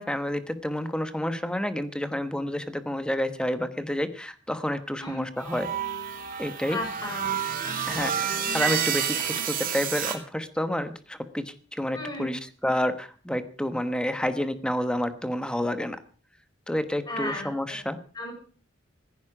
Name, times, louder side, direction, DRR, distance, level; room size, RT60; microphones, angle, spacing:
voice 1, 0.0-5.7 6.4-6.8 7.9-8.1 8.5-16.0 16.7-18.0, left 1 dB, 5° left, 10 dB, 1.1 m, -29 dB
sound 1, 5.4-10.2, right 8 dB, 50° right, 2.5 m, -29 dB
voice 2, 6.7-7.4 7.6-8.0 9.3-9.4 11.9-12.4 17.1-17.8 18.1-18.3, left 1 dB, 25° left, 2 dB, 6.6 m, -35 dB
15.5 x 15.0 x 4.9 m, 0.40 s
head